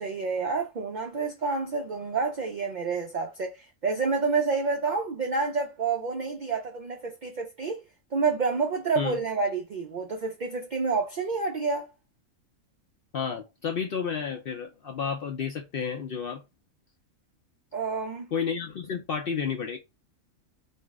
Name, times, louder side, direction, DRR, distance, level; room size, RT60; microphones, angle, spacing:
voice 1, 0.0-3.5 3.8-7.8 8.1-11.9 17.7-18.3, right 4 dB, 85° right, 0.4 m, -28 dB
voice 2, 13.1-16.4 18.3-19.8, left 6 dB, 65° left, 0.5 m, -31 dB
2.6 x 2.0 x 3.4 m
omnidirectional pair, 1.4 m